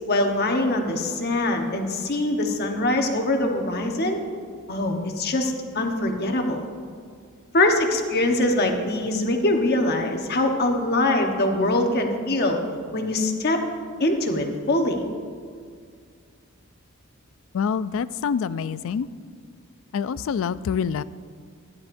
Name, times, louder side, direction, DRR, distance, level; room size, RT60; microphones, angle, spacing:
voice 1, 0.1-4.2 4.7-6.7 7.5-12.6 12.9-13.6 14.0-15.1, left 1 dB, 45° left, 3 dB, 1.1 m, -23 dB
voice 2, 17.5-19.1 19.9-21.0, left 6 dB, 65° left, 16 dB, 0.3 m, -26 dB
15.0 x 10.5 x 2.6 m, 2.1 s
head